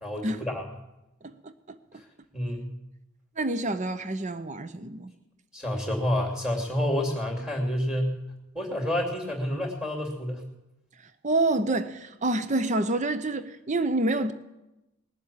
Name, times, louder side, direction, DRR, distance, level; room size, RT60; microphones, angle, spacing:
voice 1, 0.0-0.6 2.3-2.7 5.5-8.1 8.5-10.4, equal, 5° right, 2.7 m, -29 dB
voice 2, 1.2-1.8 3.4-5.1 11.2-14.3, right 2 dB, 35° right, 0.7 m, -27 dB
19.5 x 7.6 x 8.6 m
head